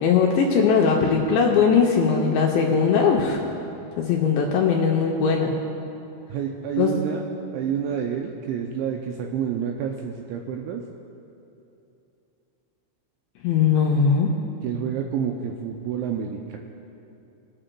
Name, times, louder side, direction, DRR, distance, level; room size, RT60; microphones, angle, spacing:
voice 1, 0.0-3.4 4.0-5.5 6.8-6.9 13.4-14.3, left 6 dB, 85° left, -1 dB, 2.6 m, -20 dB
voice 2, 6.3-7.2 7.5-10.8 14.6-16.6, right 8 dB, 85° right, 2 dB, 2.6 m, -28 dB
21.5 x 8.8 x 2.2 m, 2.8 s
omnidirectional pair, 5.7 m